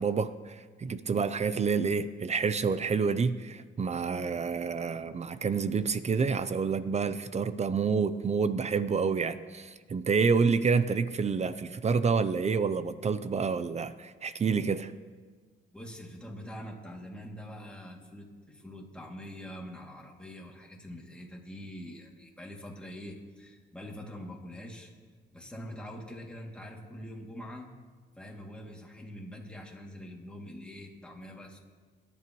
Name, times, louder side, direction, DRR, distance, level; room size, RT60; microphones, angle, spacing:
voice 1, 0.0-14.9, right 5 dB, 35° right, 13 dB, 0.6 m, -28 dB
voice 2, 15.7-24.9 25.3-27.7 28.2-31.6, equal, 5° left, -1 dB, 2.5 m, -44 dB
23.0 x 11.0 x 3.1 m, 1.5 s
cardioid pair, 90°, 20 cm